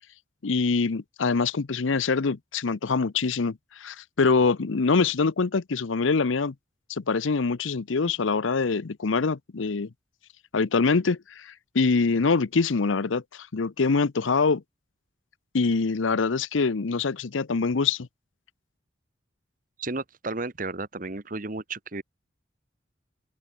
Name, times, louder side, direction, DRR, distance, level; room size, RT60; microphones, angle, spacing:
voice 1, 0.4-6.5 6.9-9.9 10.5-14.6 15.5-18.1, left 4 dB, 80° left, 0.7 m, -24 dB
voice 2, 19.8-22.0, right 3 dB, 45° right, 1.3 m, -33 dB
open air
head